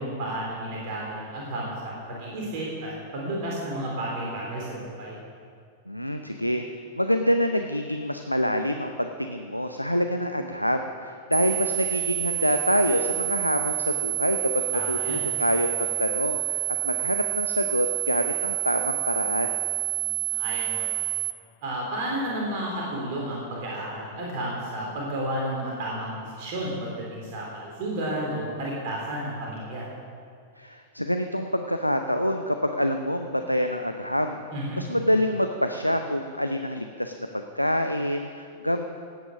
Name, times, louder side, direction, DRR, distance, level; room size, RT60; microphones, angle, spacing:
voice 1, 0.0-5.2 14.7-15.2 20.0-21.0 21.6-29.9 34.5-34.8, right 1 dB, 45° right, -3 dB, 3.5 m, -32 dB
voice 2, 5.9-6.6 6.9-19.6 30.6-34.4 34.8-38.8, equal, 90° left, 6 dB, 0.7 m, -26 dB
sound 1, 11.3-21.3, right 18 dB, 30° right, 0.4 m, -28 dB
17.5 x 9.4 x 6.4 m, 2.2 s
figure-of-eight pair, 95°, 0 cm